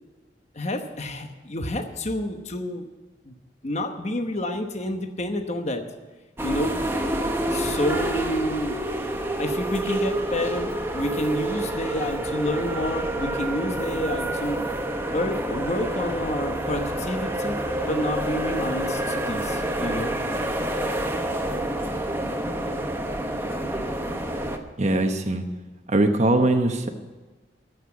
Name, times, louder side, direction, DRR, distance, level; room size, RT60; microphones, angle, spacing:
voice 1, 0.5-2.8 3.2-3.3 3.6-5.8 6.4-6.7 7.5-8.8 9.4-14.6 15.1-17.6 17.9-20.1, left 1 dB, 40° left, 5 dB, 1.0 m, -29 dB
sound 1, 6.4-24.6, right 1 dB, 15° right, 1.0 m, -28 dB
voice 2, 24.8-25.5 25.9-26.9, right 2 dB, 40° right, 5 dB, 0.9 m, -21 dB
14.5 x 6.0 x 9.5 m, 1.3 s
head